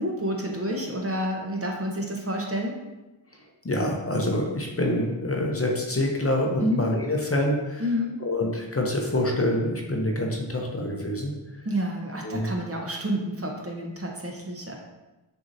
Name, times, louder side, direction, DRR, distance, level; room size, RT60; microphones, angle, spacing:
voice 1, 0.0-2.7 6.6-6.8 7.8-8.2 11.6-14.8, equal, 30° right, 0 dB, 0.8 m, -29 dB
voice 2, 3.6-7.9 8.2-11.3 12.2-12.5, left 1 dB, 30° left, 0 dB, 0.7 m, -26 dB
6.1 x 2.8 x 2.7 m, 1.1 s
cardioid pair, 50°, 49 cm